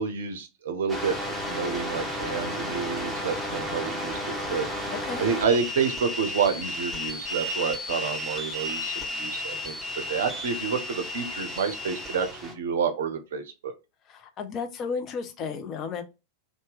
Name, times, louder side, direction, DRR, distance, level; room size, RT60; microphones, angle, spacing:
voice 1, 0.0-4.7 5.2-9.7 10.1-13.7, right 6 dB, 60° right, 0.5 m, -29 dB
sound 1, 0.9-12.5, left 1 dB, ahead, 0.8 m, -33 dB
voice 2, 4.9-5.2 14.1-16.0, left 5 dB, 30° left, 0.4 m, -33 dB
2.7 x 2.1 x 3.2 m
figure-of-eight pair, 90°, 0 cm